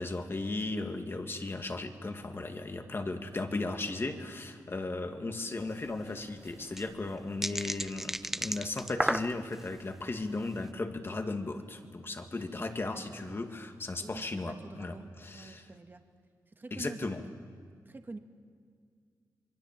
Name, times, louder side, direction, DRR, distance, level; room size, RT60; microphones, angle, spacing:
voice 1, 0.0-15.7 16.7-17.2, left 2 dB, 35° left, 6 dB, 2.1 m, -36 dB
sound 1, 5.6-5.7 5.9-6.0 6.4-9.7 10.2-10.5, right 1 dB, 5° right, 0.7 m, -33 dB
voice 2, 12.8-13.4 14.0-16.0 16.5-17.2 17.9-18.2, right 3 dB, 30° right, 6 dB, 1.6 m, -46 dB
27.0 x 22.5 x 7.5 m, 2.1 s
cardioid pair, 80°, 7 cm